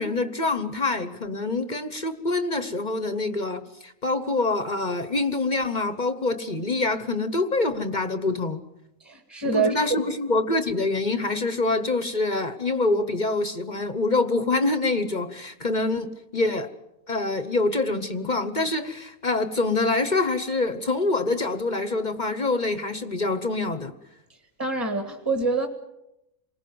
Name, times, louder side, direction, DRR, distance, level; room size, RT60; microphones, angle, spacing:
voice 1, 0.0-8.6 9.5-16.7 17.1-23.9, left 3 dB, 30° left, 11 dB, 1.1 m, -25 dB
voice 2, 9.0-10.0 24.3-25.7, right 4 dB, 10° right, 6 dB, 1.8 m, -26 dB
28.0 x 20.0 x 7.9 m, 0.89 s
omnidirectional pair, 1.7 m